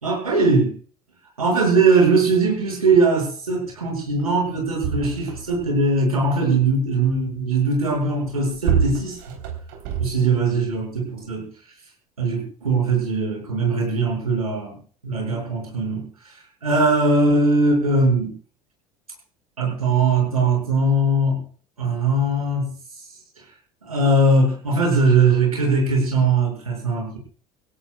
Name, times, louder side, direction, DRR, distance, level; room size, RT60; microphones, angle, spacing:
voice 1, 0.0-0.7 1.4-9.2 10.0-11.4 12.2-14.8 15.0-16.3 16.6-18.3 19.6-21.4 21.8-22.7 23.8-27.2, right 3 dB, 90° right, 0 dB, 6.1 m, -20 dB
sound 1, 4.2-4.3 4.5-5.8 8.1-10.5 11.2-11.3, right 7 dB, 65° right, 3.7 m, -27 dB
25.0 x 16.5 x 2.4 m, 0.43 s
figure-of-eight pair, 70°, 18 cm